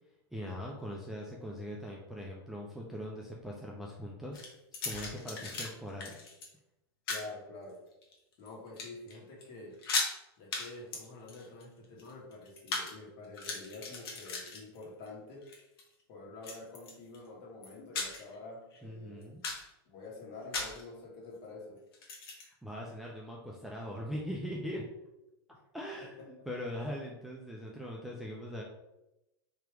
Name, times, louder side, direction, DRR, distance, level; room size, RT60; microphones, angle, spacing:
voice 1, 0.3-4.5 4.8-6.1 18.8-19.4 22.4-24.8 25.7-28.6, equal, ahead, -3 dB, 0.4 m, -41 dB
sound 1, 4.3-5.7 6.0-6.5 7.1-7.3 7.9-8.5 8.8-9.2 9.4-9.5 9.7-10.1 10.5-10.7 10.9-12.9 13.2-15.1 15.4-15.8 16.4-17.2 17.6-18.4 18.7-18.8 19.2-19.7 20.5-20.8 21.9-22.5, left 4 dB, 65° left, 1.3 m, -37 dB
voice 2, 7.1-7.8 8.4-9.7 10.4-15.4 16.1-19.3 19.9-21.8 26.0-26.1, left 2 dB, 40° left, -2 dB, 1.6 m, -47 dB
3.4 x 2.9 x 4.6 m, 0.92 s
supercardioid pair, 150°, 13 cm